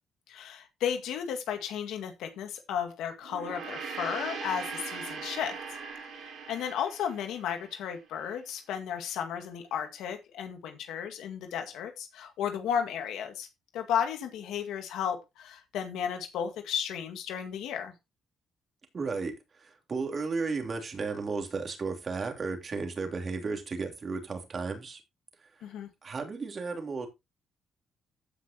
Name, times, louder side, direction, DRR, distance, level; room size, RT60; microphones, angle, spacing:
voice 1, 0.3-5.6 6.2-13.5 13.7-17.9 25.6-25.9, left 8 dB, 85° left, 1.9 m, -34 dB
Gong, 3.2-7.9, right 5 dB, 65° right, 7.2 m, -40 dB
voice 2, 18.9-25.0 25.4-27.1, right 4 dB, 40° right, 3.2 m, -34 dB
15.0 x 6.0 x 2.9 m
cardioid pair, 90°, 0 cm